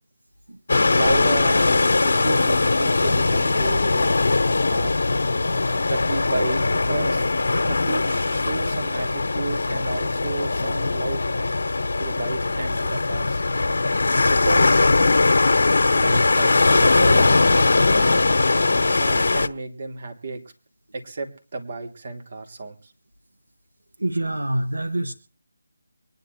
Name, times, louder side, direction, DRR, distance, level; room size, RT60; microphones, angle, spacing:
sound 1, 0.7-19.5, left 3 dB, 55° left, 1.4 m, -20 dB
voice 1, 0.9-5.0 5.9-7.3 7.6-11.2 12.0-13.4 14.3-14.9 16.0-17.6 18.5-20.4 20.9-22.9, right 3 dB, 45° right, 3 dB, 3.8 m, -32 dB
voice 2, 24.0-25.1, right 1 dB, 80° right, 9 dB, 1.6 m, -26 dB
24.0 x 11.0 x 4.5 m, 0.35 s
figure-of-eight pair, 160°, 0 cm